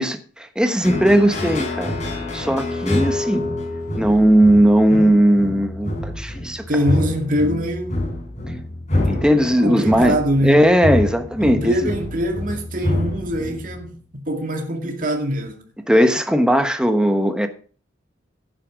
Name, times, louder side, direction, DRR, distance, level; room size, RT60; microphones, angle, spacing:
voice 1, 0.0-1.9 2.3-3.4 4.0-6.6 9.1-10.2 10.4-11.9 15.9-17.5, equal, 5° right, 1.1 m, -17 dB
sound 1, 0.8-14.0, left 1 dB, 35° left, 4.7 m, -26 dB
voice 2, 6.7-8.0 9.6-10.6 11.4-15.6, equal, 45° right, 2.2 m, -23 dB
11.0 x 9.0 x 6.2 m
head